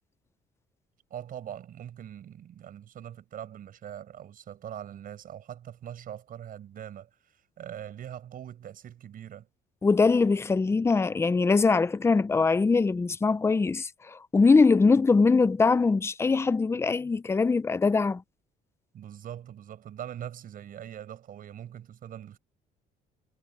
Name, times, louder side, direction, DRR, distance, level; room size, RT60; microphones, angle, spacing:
voice 1, 1.1-9.5 18.9-22.4, right 10 dB, 55° right, 6.1 m, -42 dB
voice 2, 9.8-18.2, left 4 dB, 15° left, 0.5 m, -22 dB
cardioid pair, 110°, 17 cm